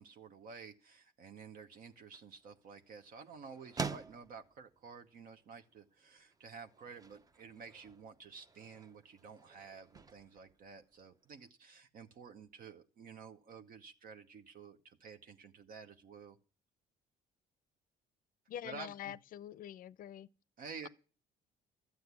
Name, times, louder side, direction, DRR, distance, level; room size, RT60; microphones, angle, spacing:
voice 1, 0.0-16.4 18.6-19.2 20.6-20.9, right 5 dB, 55° right, 1.0 m, -51 dB
Window Moving, 1.7-11.5, right 5 dB, 20° right, 0.7 m, -49 dB
voice 2, 18.5-20.3 20.8-20.9, left 11 dB, 55° left, 0.5 m, -45 dB
13.0 x 7.7 x 8.2 m
cardioid pair, 110°, 17 cm